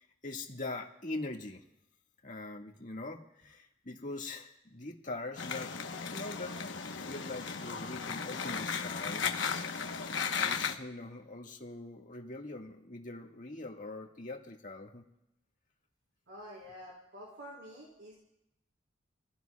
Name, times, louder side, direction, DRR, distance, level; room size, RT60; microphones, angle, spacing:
voice 1, 0.0-1.6 2.2-5.7 6.1-6.5 6.9-9.3 10.4-15.0, left 2 dB, 40° left, 1 dB, 1.8 m, -42 dB
sound 1, 5.4-10.7, left 6 dB, 70° left, 1.1 m, -35 dB
voice 2, 16.3-18.2, equal, 70° right, -5 dB, 3.9 m, -48 dB
27.5 x 16.5 x 2.3 m, 0.86 s
head